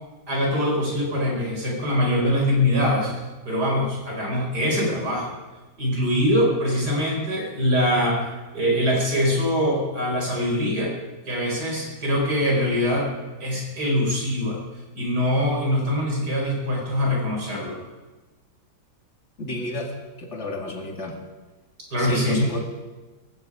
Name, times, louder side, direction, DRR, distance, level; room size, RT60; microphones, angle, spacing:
voice 1, 0.3-3.1 3.5-5.4 5.8-10.9 11.3-13.1 13.4-14.6 15.0-17.8 21.9-22.4, equal, 85° right, -1 dB, 5.3 m, -23 dB
voice 2, 19.4-21.2 22.0-22.6, equal, 45° left, 1 dB, 2.9 m, -29 dB
17.5 x 16.0 x 5.0 m, 1.2 s
omnidirectional pair, 1.7 m